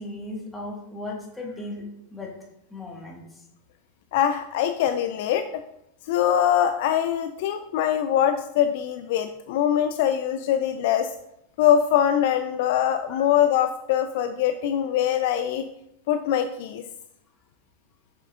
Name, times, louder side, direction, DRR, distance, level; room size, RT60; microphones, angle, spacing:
voice 1, 0.0-2.3 2.7-3.4 13.1-13.2, left 2 dB, 10° left, -1 dB, 1.7 m, -36 dB
voice 2, 4.1-5.6 6.0-11.1 11.6-15.7 16.1-16.9, left 10 dB, 50° left, 9 dB, 0.4 m, -23 dB
7.3 x 6.5 x 2.6 m, 0.79 s
figure-of-eight pair, 90°, 0 cm